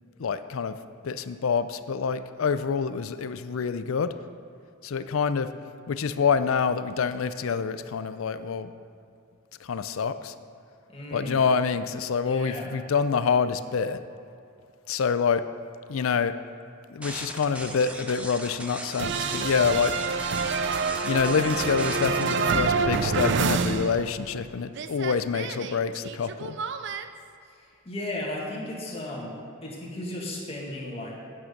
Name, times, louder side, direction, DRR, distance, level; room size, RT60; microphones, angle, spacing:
voice 1, 0.2-0.8 1.0-4.1 4.8-5.5 5.9-8.7 9.6-10.3 11.1-14.0 14.9-15.5 15.9-16.4 16.9-19.9 21.0-26.6, left 6 dB, 80° left, 12 dB, 0.4 m, -26 dB
voice 2, 10.9-11.4 12.2-12.7 27.4-31.2, left 1 dB, 30° left, -3 dB, 1.8 m, -35 dB
sound 1, 17.0-22.3, right 1 dB, 5° right, 0.7 m, -38 dB
sound 2, 19.0-24.5 24.7-27.0, right 5 dB, 55° right, 0.4 m, -27 dB
8.7 x 8.4 x 5.2 m, 2.5 s
head